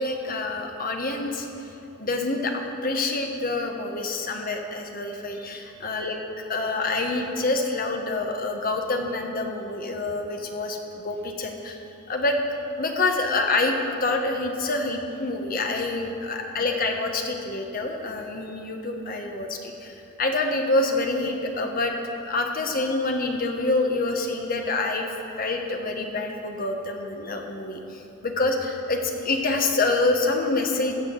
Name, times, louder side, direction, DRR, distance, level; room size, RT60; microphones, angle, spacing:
voice 1, 0.0-6.2 6.5-11.8 12.1-12.4 12.8-21.9 22.2-25.1 25.4-31.0, left 2 dB, 45° left, 3 dB, 1.2 m, -27 dB
15.5 x 6.1 x 7.5 m, 2.8 s
head